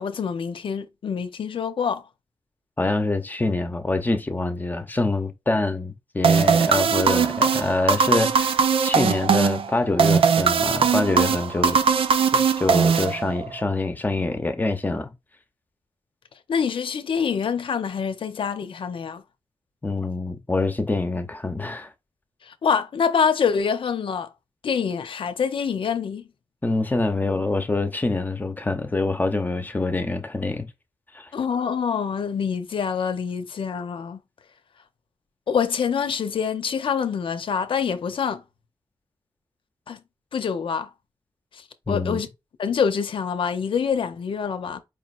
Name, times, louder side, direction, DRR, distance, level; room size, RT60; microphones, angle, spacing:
voice 1, 0.0-2.0 16.5-19.2 22.4-24.3 24.6-26.3 31.3-34.2 35.5-38.4 39.9-40.0 40.3-40.9 41.5-42.3 42.6-44.8, left 6 dB, 70° left, 0.7 m, -25 dB
voice 2, 2.8-11.8 12.3-15.1 19.8-21.9 26.6-30.7 31.1-31.3 41.9-42.2, left 2 dB, 20° left, 0.8 m, -25 dB
sound 1, 6.2-13.6, right 6 dB, 85° right, 0.5 m, -20 dB
5.0 x 3.0 x 2.5 m
wide cardioid pair, 135°, 9 cm